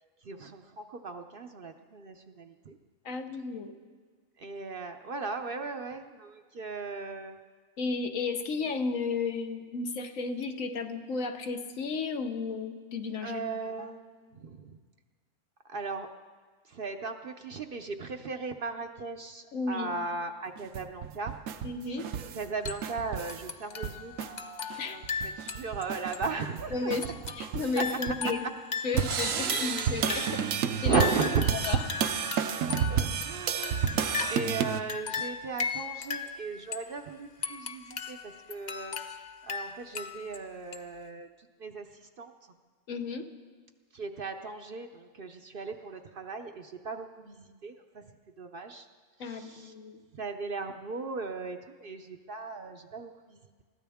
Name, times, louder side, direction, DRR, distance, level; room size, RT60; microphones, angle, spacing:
voice 1, 0.2-2.8 4.4-7.4 13.2-14.8 15.7-16.1 16.7-21.4 21.9-22.0 22.3-27.1 27.8-27.9 28.4-28.5 29.3-30.5 30.8-31.5 32.6-39.0 39.4-42.3 43.9-48.1 48.4-48.9 49.2-49.7 50.1-53.6, right 4 dB, 50° right, 6 dB, 0.7 m, -37 dB
voice 2, 3.0-3.7 7.8-14.0 19.5-20.1 21.6-22.1 24.8-25.0 26.7-28.4 28.8-30.4 30.8-31.0 31.5-31.9 42.9-43.2 49.2-50.0, left 4 dB, 80° left, 6 dB, 1.4 m, -33 dB
sound 1, 20.6-23.5 23.8-24.3 24.7-24.8 25.0-28.3 28.9-34.8, right 8 dB, 75° right, 1.0 m, -31 dB
sound 2, 22.6-23.0 23.3-25.8 26.1-26.2 27.0-30.5 30.9-34.6 34.9-36.9 37.4-40.4 40.7-40.8, left 5 dB, 40° left, 0.7 m, -37 dB
22.0 x 15.0 x 3.5 m, 1.5 s
omnidirectional pair, 1.4 m